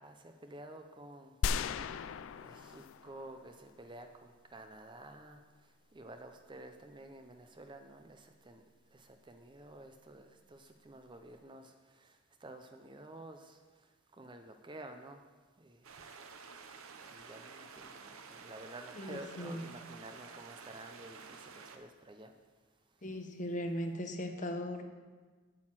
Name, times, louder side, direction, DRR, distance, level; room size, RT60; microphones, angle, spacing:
voice 1, 0.0-15.2 15.6-16.1 17.0-22.4 22.9-23.0, right 1 dB, 20° right, 6 dB, 0.5 m, -52 dB
sound 1, 1.4-3.7, left 6 dB, 60° left, 0.3 m, -37 dB
sound 2, 15.8-21.8, right 5 dB, 75° right, 0.8 m, -51 dB
voice 2, 19.0-19.7 23.0-24.8, equal, 35° left, 5 dB, 0.8 m, -38 dB
8.7 x 6.4 x 7.4 m, 1.4 s
head